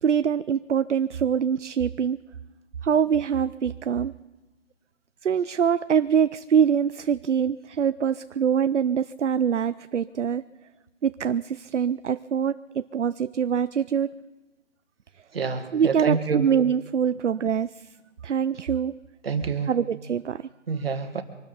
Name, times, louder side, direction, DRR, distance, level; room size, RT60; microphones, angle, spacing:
voice 1, 0.0-2.2 2.8-4.1 5.2-10.4 11.0-14.1 15.7-17.8 18.2-19.0 19.7-20.5, right 8 dB, 65° right, 14 dB, 0.6 m, -24 dB
voice 2, 15.3-16.5 19.2-19.7 20.7-21.2, right 5 dB, 50° right, 9 dB, 1.7 m, -27 dB
25.0 x 12.5 x 4.0 m, 1.1 s
figure-of-eight pair, 165°, 38 cm